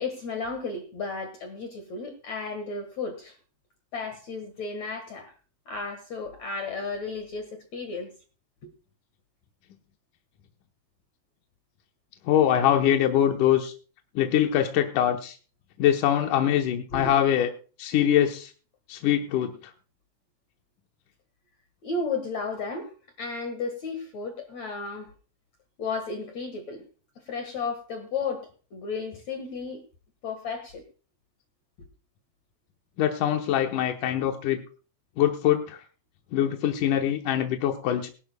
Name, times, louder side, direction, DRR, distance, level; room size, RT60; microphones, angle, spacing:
voice 1, 0.0-3.3 3.9-5.3 5.7-8.1 16.9-17.1 21.8-22.9 23.2-25.1 25.8-26.8 27.3-29.8 30.2-30.8, left 4 dB, 55° left, 6 dB, 2.4 m, -33 dB
voice 2, 12.3-13.7 14.2-15.4 15.8-17.5 17.8-18.5 18.9-19.5 33.0-34.6 35.2-35.8 36.3-38.1, left 10 dB, 70° left, 4 dB, 2.1 m, -23 dB
22.5 x 11.5 x 2.2 m, 0.37 s
omnidirectional pair, 4.5 m